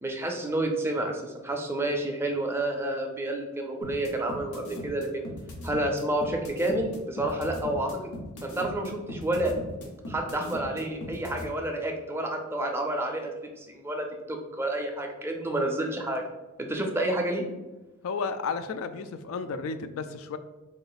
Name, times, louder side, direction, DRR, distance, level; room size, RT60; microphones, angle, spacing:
voice 1, 0.0-5.2 5.6-8.0 8.4-9.5 10.1-13.3 13.6-16.2 16.6-17.4, right 1 dB, 10° right, 2 dB, 0.4 m, -29 dB
sound 1, 3.8-11.4, left 1 dB, 90° left, 0.7 m, -38 dB
voice 2, 18.0-20.4, left 5 dB, 70° left, 10 dB, 0.3 m, -32 dB
3.7 x 2.5 x 3.9 m, 1.1 s
head